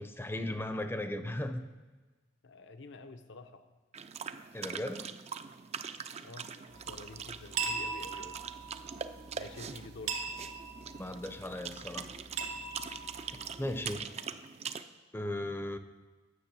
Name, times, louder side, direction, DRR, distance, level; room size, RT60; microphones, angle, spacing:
voice 1, 0.0-1.6 4.5-5.1 11.0-12.1 13.5-14.1 15.1-15.8, left 1 dB, 10° left, 9 dB, 0.6 m, -36 dB
voice 2, 2.4-3.7 6.2-8.4 9.3-10.3, left 3 dB, 65° left, 8 dB, 0.8 m, -49 dB
sound 1, 3.9-14.8, right 7 dB, 35° right, 0.4 m, -43 dB
sound 2, 6.7-13.9, right 5 dB, 85° right, 1.3 m, -41 dB
9.8 x 6.4 x 6.8 m, 1.3 s
head